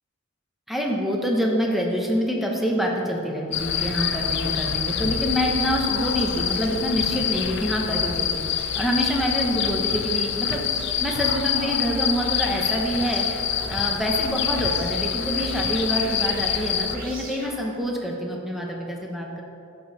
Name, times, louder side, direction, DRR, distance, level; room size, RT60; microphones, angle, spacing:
voice 1, 0.7-8.4 8.8-10.6 11.0-13.3 13.7-19.4, equal, ahead, -1 dB, 0.9 m, -26 dB
sound 1, 3.5-17.0, left 8 dB, 55° left, 0.5 m, -26 dB
sound 2, 4.2-13.7 14.0-17.8, right 1 dB, 45° right, 1.9 m, -45 dB
10.0 x 6.2 x 4.1 m, 2.7 s
head